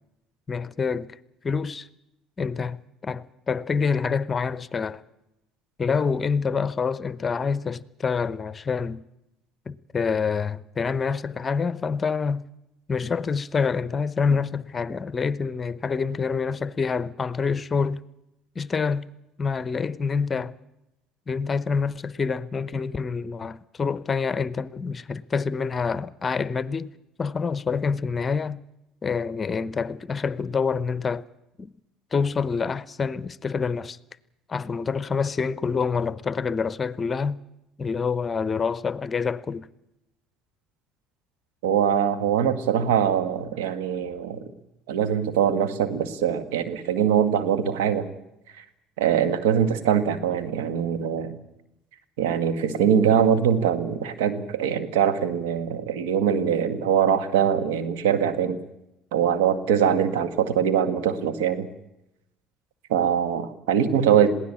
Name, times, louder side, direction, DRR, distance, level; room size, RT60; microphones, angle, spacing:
voice 1, 0.5-1.1 1.4-1.9 2.4-5.0 5.8-9.0 9.7-12.4 12.9-18.0 18.6-19.1 19.4-20.5 21.3-26.9 27.2-28.6 29.0-31.2 31.6-31.7 32.1-34.0 34.5-37.4 37.8-39.7, left 5 dB, 30° left, 0.8 m, -27 dB
voice 2, 41.6-44.5 44.9-48.1 48.5-48.6 49.0-51.3 52.2-58.6 59.1-61.7 62.9-64.3, right 8 dB, 85° right, 1.6 m, -22 dB
21.5 x 16.5 x 8.6 m
hypercardioid pair, 70°, 0 cm